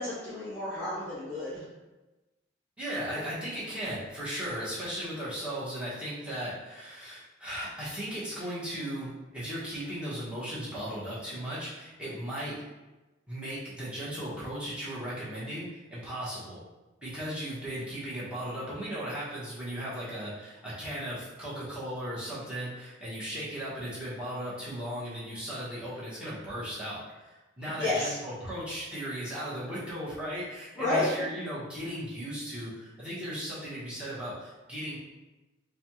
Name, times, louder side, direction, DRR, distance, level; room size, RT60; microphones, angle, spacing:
voice 1, 0.0-1.6 27.8-28.2 30.8-31.1, left 2 dB, 10° left, -11 dB, 0.8 m, -30 dB
voice 2, 2.8-12.6 13.3-16.6 17.0-35.0, equal, 5° right, -10 dB, 1.1 m, -36 dB
4.2 x 2.3 x 3.0 m, 1.1 s
head